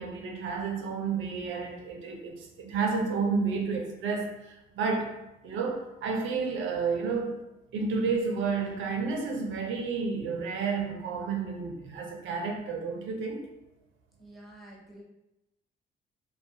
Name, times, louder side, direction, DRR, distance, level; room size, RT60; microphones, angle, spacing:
voice 1, 0.0-5.1 5.4-7.4 7.7-13.4, right 4 dB, 75° right, 3 dB, 0.5 m, -31 dB
voice 2, 14.2-15.0, right 1 dB, ahead, -3 dB, 0.7 m, -49 dB
2.3 x 2.2 x 2.6 m, 0.90 s
cardioid pair, 90°, 20 cm